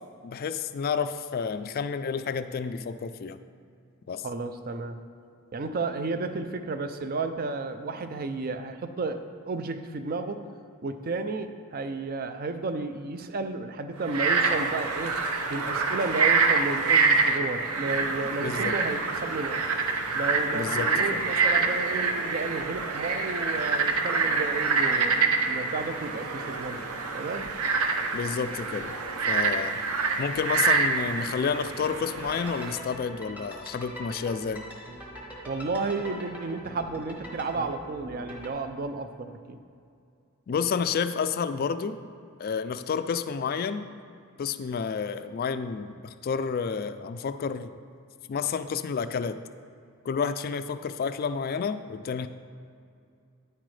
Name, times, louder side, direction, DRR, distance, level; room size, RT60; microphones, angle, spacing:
voice 1, 0.2-3.4 4.1-4.3 18.4-18.8 20.5-21.2 28.1-28.9 29.3-29.8 30.2-34.6 40.5-42.0 42.4-43.9 44.4-47.7 48.3-49.4 50.0-52.3, left 6 dB, 45° left, 11 dB, 0.3 m, -30 dB
voice 2, 4.2-5.0 5.5-10.4 10.8-15.2 15.5-19.6 20.1-26.9 27.1-27.5 35.5-39.6, right 3 dB, 40° right, 9 dB, 0.4 m, -32 dB
Frog, 14.0-32.8, right 4 dB, 75° right, 0.7 m, -26 dB
sound 1, 32.2-38.5, equal, 5° right, 0.9 m, -42 dB
9.5 x 7.7 x 3.2 m, 2.4 s
head